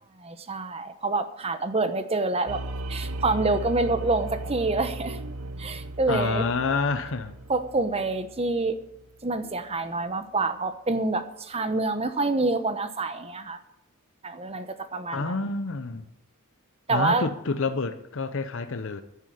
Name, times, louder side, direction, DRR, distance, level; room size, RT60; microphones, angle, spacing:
voice 1, 0.2-2.6 2.9-5.2 5.6-6.5 7.5-8.8 9.2-13.6 14.2-15.3 16.9-17.3, right 3 dB, 25° right, 1.0 m, -27 dB
sound 1, 2.5-9.3, right 1 dB, 70° right, 0.7 m, -37 dB
voice 2, 6.1-7.3 15.1-16.1 16.9-19.0, left 4 dB, 60° left, 0.7 m, -28 dB
10.5 x 9.7 x 8.7 m
head